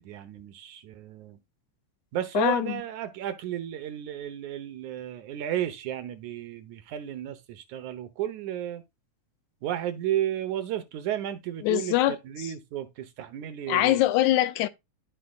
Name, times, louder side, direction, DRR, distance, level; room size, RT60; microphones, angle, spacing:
voice 1, 0.0-1.4 2.1-8.8 9.6-14.0, right 11 dB, 75° right, 2.4 m, -33 dB
voice 2, 2.4-2.8 11.6-12.2 13.7-14.7, left 14 dB, 80° left, 1.9 m, -23 dB
13.5 x 4.9 x 2.4 m
omnidirectional pair, 3.5 m